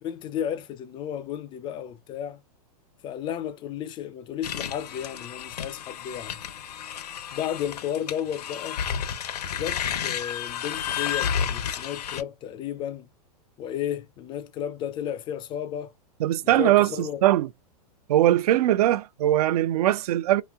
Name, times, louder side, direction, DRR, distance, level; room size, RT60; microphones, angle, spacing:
voice 1, 0.0-2.4 3.0-6.4 7.3-8.8 9.5-13.1 13.6-15.9 16.4-17.3, left 9 dB, 25° left, 0.3 m, -33 dB
sound 1, 4.4-12.2, left 8 dB, 80° left, 0.7 m, -31 dB
voice 2, 16.2-17.5 18.1-20.4, right 13 dB, 70° right, 0.4 m, -21 dB
3.2 x 3.0 x 2.3 m
hypercardioid pair, 125°, 20 cm